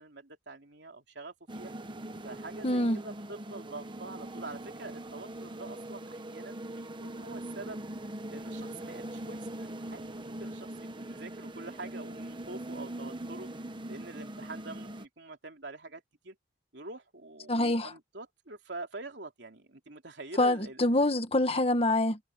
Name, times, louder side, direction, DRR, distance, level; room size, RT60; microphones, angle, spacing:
voice 1, 0.0-1.7 2.2-7.8 8.3-13.5 13.9-16.4 16.7-20.9, right 2 dB, 70° right, 3.4 m, -45 dB
sound 1, 1.5-15.1, right 1 dB, 25° right, 1.1 m, -41 dB
voice 2, 2.6-3.0 17.5-17.9 20.4-22.2, left 1 dB, 35° left, 1.5 m, -25 dB
head